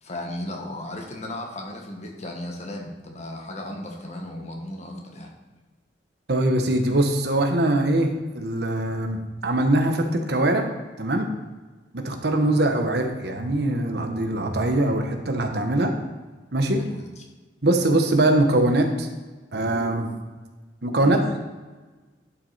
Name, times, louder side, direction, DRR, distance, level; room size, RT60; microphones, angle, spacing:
voice 1, 0.0-5.3 16.8-17.1 21.0-21.2, left 1 dB, 40° left, 1 dB, 1.5 m, -35 dB
voice 2, 6.3-10.7 11.0-11.3 11.9-15.9 16.5-16.9 17.6-19.1 19.5-20.2 20.8-21.4, right 1 dB, 65° right, 4 dB, 1.2 m, -22 dB
11.0 x 6.1 x 4.1 m, 1.3 s
head